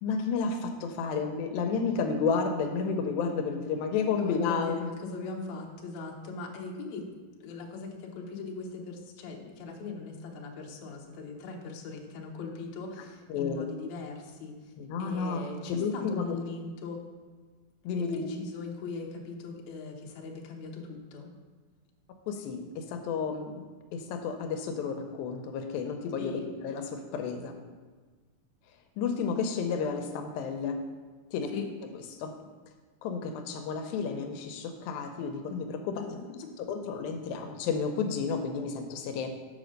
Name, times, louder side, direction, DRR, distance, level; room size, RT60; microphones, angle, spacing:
voice 1, 0.0-4.9 13.3-13.7 14.8-15.4 15.7-16.4 17.8-18.3 22.3-23.6 23.9-27.6 29.0-30.8 31.3-31.5 32.2-32.4 33.0-36.1 36.6-39.3, left 5 dB, 85° left, 5 dB, 2.5 m, -31 dB
voice 2, 4.2-7.0 7.4-14.7 15.0-17.0 18.0-21.3 26.2-26.5 31.5-31.7, left 4 dB, 65° left, 1 dB, 2.1 m, -40 dB
7.2 x 5.1 x 6.4 m, 1.4 s
omnidirectional pair, 4.1 m